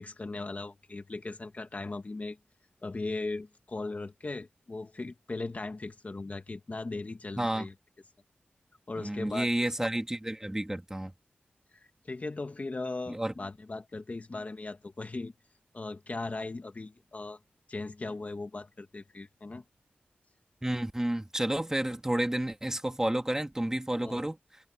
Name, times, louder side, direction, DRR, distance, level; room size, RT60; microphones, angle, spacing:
voice 1, 0.0-2.4 2.8-7.7 8.9-9.5 9.8-9.9 11.7-15.3 15.7-17.4 17.7-19.6 24.0-24.2, left 3 dB, 45° left, 1.7 m, -38 dB
voice 2, 7.4-7.7 9.0-11.1 13.1-13.3 20.6-24.4, right 1 dB, 15° right, 2.3 m, -30 dB
wide cardioid pair, 85°, 4 cm